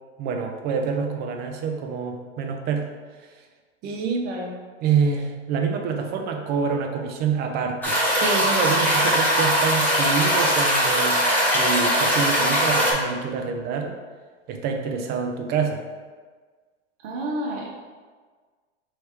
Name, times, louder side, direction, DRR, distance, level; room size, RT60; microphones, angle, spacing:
voice 1, 0.2-2.9 3.8-4.3 4.8-11.2 11.5-13.9 14.5-15.8, right 5 dB, 30° right, 3 dB, 0.5 m, -26 dB
sound 1, 7.8-12.9, equal, 5° left, 1.0 m, -21 dB
voice 2, 17.0-17.7, right 1 dB, 65° right, -3 dB, 1.2 m, -30 dB
3.4 x 3.1 x 4.5 m, 1.5 s
hypercardioid pair, 130°, 35 cm